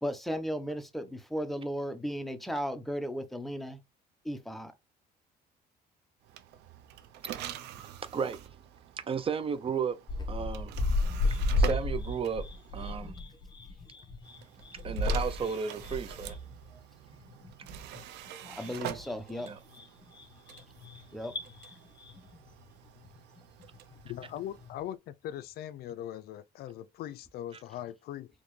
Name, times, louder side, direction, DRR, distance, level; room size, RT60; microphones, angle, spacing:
voice 1, 0.0-3.8 4.2-4.7 18.5-19.5 21.1-21.3, equal, ahead, 0.8 m, -35 dB
sound 1, 6.2-13.2 14.2-24.8, right 11 dB, 85° right, 0.6 m, -45 dB
voice 2, 9.1-10.0 10.3-10.7 11.6-12.4 12.7-13.2 14.8-16.4 19.4-19.6, right 6 dB, 35° right, 0.5 m, -33 dB
sound 2, 10.1-24.3 24.6-24.8, left 2 dB, 25° left, 1.2 m, -34 dB
voice 3, 24.0-28.3, left 12 dB, 65° left, 0.4 m, -40 dB
4.2 x 3.0 x 3.1 m
cardioid pair, 110°, 17 cm